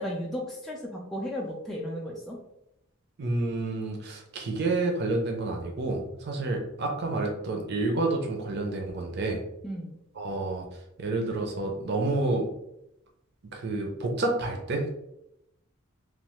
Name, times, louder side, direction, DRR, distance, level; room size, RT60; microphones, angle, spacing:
voice 1, 0.0-2.4 9.6-10.0, equal, ahead, -3 dB, 0.3 m, -34 dB
voice 2, 3.2-9.4 10.2-10.6 11.0-12.4 13.5-14.9, right 2 dB, 55° right, 2 dB, 0.5 m, -29 dB
3.1 x 2.0 x 2.9 m, 0.80 s
head